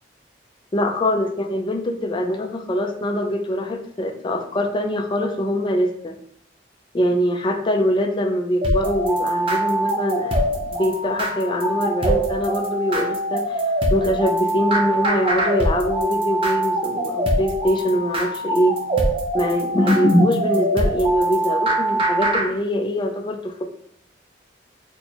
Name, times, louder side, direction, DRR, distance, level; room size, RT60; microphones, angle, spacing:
voice 1, 0.7-6.1 6.9-13.6 13.9-18.8 19.3-23.6, equal, 25° left, 3 dB, 0.4 m, -23 dB
sound 1, 8.6-22.5, right 1 dB, 30° right, 0.5 m, -23 dB
4.5 x 2.1 x 2.8 m, 0.68 s
head